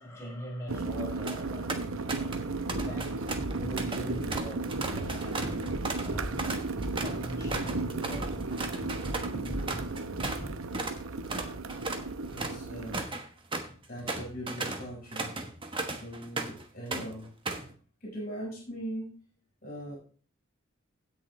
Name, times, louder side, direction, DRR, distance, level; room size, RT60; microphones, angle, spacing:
voice 1, 0.0-1.7 2.0-6.3 7.0-8.4 9.3-9.6, equal, 15° left, 5.3 m, -43 dB
sound 1, 0.7-13.0, right 3 dB, 80° right, 0.8 m, -35 dB
sound 2, 1.3-1.4 1.7-2.4 2.7-10.4 10.7-11.0 11.3-16.6 16.9-17.7, right 3 dB, 25° right, 1.2 m, -36 dB
sound 3, 2.7-3.8 4.0-4.4 4.7-7.1 7.4-9.2 9.5-10.5, equal, ahead, 6.3 m, -38 dB
voice 2, 12.3-13.0 13.9-15.4 16.0-17.3 18.0-19.1 19.6-20.0, equal, 40° left, 4.4 m, -40 dB
16.5 x 6.8 x 3.1 m
head